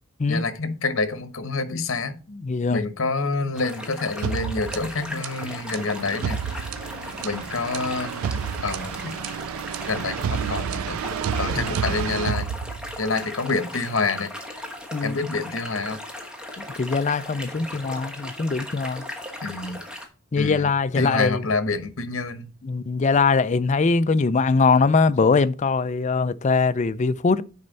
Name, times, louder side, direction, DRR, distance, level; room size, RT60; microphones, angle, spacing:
voice 1, 0.3-2.2 2.7-6.4 7.2-8.2 8.6-9.2 9.9-11.0 11.3-12.5 13.0-14.3 15.0-16.0 19.4-19.8 20.4-20.7 20.9-22.5, left 3 dB, 65° left, 1.1 m, -27 dB
voice 2, 2.3-2.8 7.2-7.3 11.5-11.7 14.9-15.3 16.6-19.0 20.3-21.5 22.6-27.4, left 4 dB, 35° left, 0.4 m, -22 dB
sound 1, 3.5-20.1, left 1 dB, 5° right, 1.2 m, -37 dB
sound 2, 4.2-13.2, right 7 dB, 80° right, 0.3 m, -30 dB
9.7 x 4.3 x 4.0 m
head